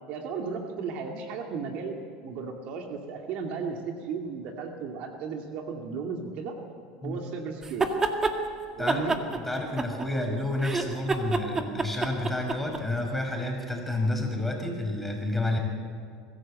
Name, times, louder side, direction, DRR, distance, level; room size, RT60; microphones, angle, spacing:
voice 1, 0.1-2.0 2.2-6.5 7.0-7.9 8.8-9.2, right 5 dB, 60° right, 2 dB, 2.5 m, -35 dB
sound 1, 7.6-8.4 8.9-10.3 10.6-12.8, right 3 dB, 20° right, 2.0 m, -27 dB
voice 2, 8.8-15.6, left 1 dB, 5° left, 1 dB, 5.7 m, -30 dB
23.5 x 15.5 x 7.8 m, 2.2 s
hypercardioid pair, 85°, 2 cm